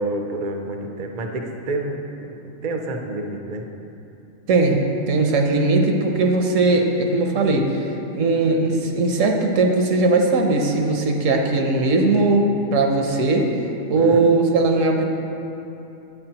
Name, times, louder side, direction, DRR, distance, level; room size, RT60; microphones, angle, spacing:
voice 1, 0.0-2.0 2.6-3.6 14.0-14.2, right 2 dB, 50° right, 3 dB, 0.5 m, -28 dB
voice 2, 4.5-4.8 5.1-13.5 13.9-15.0, right 3 dB, 75° right, 2 dB, 1.1 m, -19 dB
9.0 x 8.1 x 2.9 m, 2.9 s
omnidirectional pair, 1.3 m